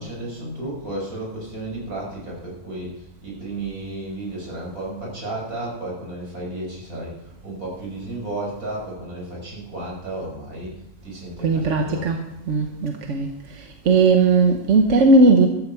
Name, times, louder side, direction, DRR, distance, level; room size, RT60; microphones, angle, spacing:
voice 1, 0.0-10.7 11.0-12.1, right 2 dB, 90° right, 6.4 m, -33 dB
voice 2, 11.4-15.5, right 3 dB, 60° right, 1.4 m, -18 dB
13.5 x 13.0 x 4.5 m
omnidirectional pair, 1.5 m